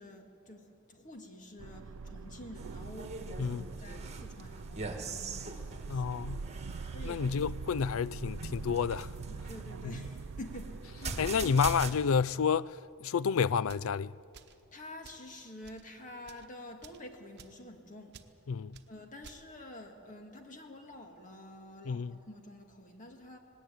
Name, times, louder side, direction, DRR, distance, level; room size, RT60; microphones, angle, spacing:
voice 1, 0.0-6.0 6.9-7.2 9.3-11.3 14.7-18.2 18.9-23.4, left 1 dB, 40° left, 1.9 m, -49 dB
sound 1, 1.6-11.3, right 4 dB, 75° right, 0.5 m, -43 dB
sound 2, 2.6-11.9, right 4 dB, 35° right, 1.5 m, -43 dB
voice 2, 5.9-6.5 7.0-9.1 11.2-14.1 18.5-18.8 21.9-22.2, left 6 dB, 70° left, 0.4 m, -30 dB
sound 3, 13.6-13.9 14.3-14.6 15.0-15.3 15.6-15.8 16.2-16.5 16.8-17.0 17.4-17.6 18.1-18.3 18.7-18.9 19.2-19.4, right 5 dB, 55° right, 1.0 m, -54 dB
19.0 x 17.5 x 9.1 m
head